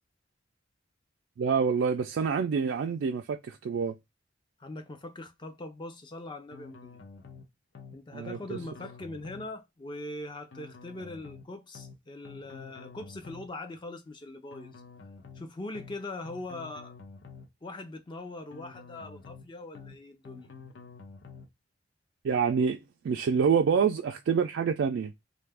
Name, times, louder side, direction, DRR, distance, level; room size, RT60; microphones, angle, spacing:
voice 1, 1.4-3.9 8.1-8.6 22.2-22.8 23.0-25.1, right 6 dB, 80° right, 0.3 m, -27 dB
voice 2, 4.6-7.0 7.9-14.8 15.3-16.9 17.6-20.5, left 2 dB, 25° left, 0.4 m, -41 dB
sound 1, 6.5-7.4 7.7-8.0 8.2-9.5 10.5-11.4 11.7-12.0 12.2-13.5 14.5-15.4 15.7-16.0 16.2-17.5 18.5-19.4 19.7-20.0 20.2-21.5, left 5 dB, 85° left, 0.7 m, -48 dB
2.6 x 2.4 x 3.3 m
head